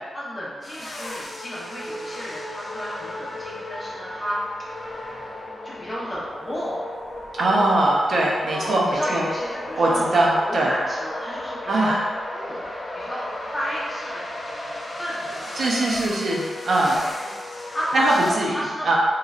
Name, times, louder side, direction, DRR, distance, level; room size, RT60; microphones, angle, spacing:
voice 1, 0.1-4.7 5.6-6.8 8.5-10.2 10.4-12.0 12.3-12.7 12.9-13.3 13.5-15.7 17.2-17.4 17.7-19.0, equal, 15° left, -7 dB, 0.8 m, -32 dB
sound 1, 0.6-18.3, left 1 dB, 40° left, 0.4 m, -35 dB
voice 2, 7.4-9.2 9.8-10.7 11.7-12.0 15.6-17.1 17.9-18.6 18.8-19.0, right 2 dB, 60° right, -3 dB, 0.5 m, -21 dB
3.1 x 2.4 x 2.3 m, 1.5 s
wide cardioid pair, 145°, 0 cm